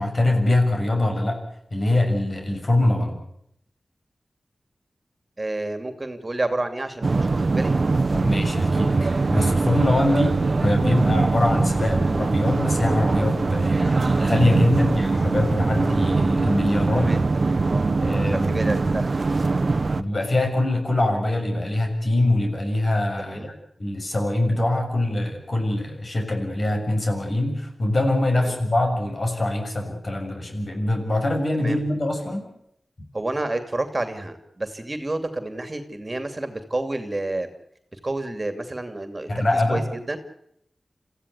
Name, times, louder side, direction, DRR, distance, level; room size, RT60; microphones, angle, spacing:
voice 1, 0.0-1.4 1.7-3.2 8.1-10.4 10.6-17.1 18.0-18.7 20.0-23.5 23.8-32.5 39.3-39.8, left 1 dB, 55° left, 4 dB, 6.7 m, -23 dB
voice 2, 5.4-7.8 16.9-18.0 18.2-19.1 19.4-19.6 23.2-23.5 28.3-28.6 31.5-31.8 33.1-37.5 37.9-39.4 39.7-40.2, right 2 dB, 30° right, 8 dB, 2.6 m, -30 dB
sound 1, 7.0-20.0, right 3 dB, 55° right, 1.1 m, -22 dB
27.5 x 15.5 x 8.3 m, 0.75 s
wide cardioid pair, 70°, 0 cm